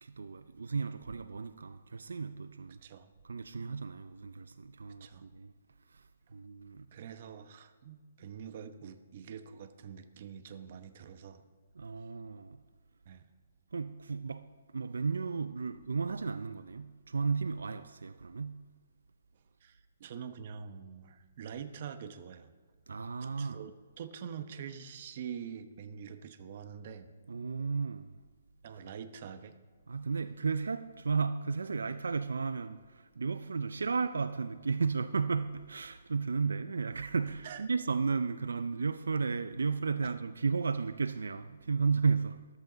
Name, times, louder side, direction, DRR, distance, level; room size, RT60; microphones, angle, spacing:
voice 1, 0.0-2.8 3.2-5.5 5.9-6.0 6.3-6.9 11.8-12.6 13.7-18.7 22.9-23.7 27.3-28.2 29.9-42.5, right 5 dB, 85° right, 0.5 m, -34 dB
voice 2, 2.8-3.1 5.0-5.3 6.9-11.4 13.0-13.3 19.6-22.5 22.9-27.1 28.6-29.5 37.4-37.7 40.0-40.1, right 7 dB, 45° right, 1.0 m, -45 dB
14.0 x 13.0 x 4.0 m
hypercardioid pair, 155°, 0 cm